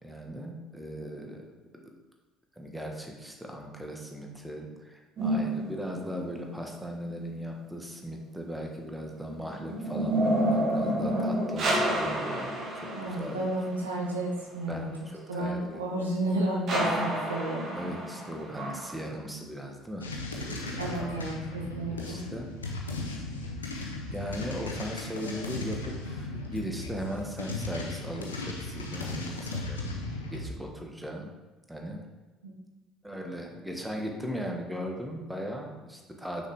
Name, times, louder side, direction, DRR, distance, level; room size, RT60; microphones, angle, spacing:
voice 1, 0.0-1.4 1.7-1.9 2.6-13.4 14.7-15.8 17.7-21.0 21.9-22.5 24.1-31.3 31.7-32.0 33.0-36.5, equal, 5° right, 1 dB, 1.3 m, -38 dB
sound 1, 5.2-6.5 9.0-13.8 16.7-19.1, right 1 dB, 50° right, 1.7 m, -29 dB
voice 2, 12.9-14.9 15.3-17.7 20.8-22.2 32.4-32.5, right 1 dB, 85° right, -1 dB, 1.0 m, -32 dB
sound 2, 20.0-30.5, left 2 dB, 85° left, 0.6 m, -36 dB
6.2 x 5.4 x 3.5 m, 1.2 s
figure-of-eight pair, 55°, 0 cm